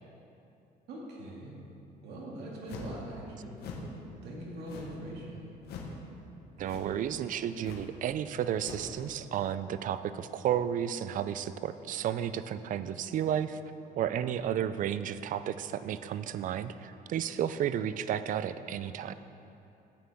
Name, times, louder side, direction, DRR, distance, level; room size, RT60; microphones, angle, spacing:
voice 1, 0.9-1.5 2.0-5.4, right 1 dB, 75° right, -4 dB, 2.3 m, -42 dB
sound 1, 2.7-3.0 3.6-3.9 4.7-5.1 5.6-6.0 6.6-7.0 7.6-7.9 8.6-8.9, left 4 dB, 75° left, 1.3 m, -43 dB
voice 2, 6.6-13.6 14.0-19.1, right 9 dB, 50° right, 13 dB, 0.4 m, -32 dB
13.0 x 9.0 x 3.6 m, 2.8 s
cardioid pair, 110°, 17 cm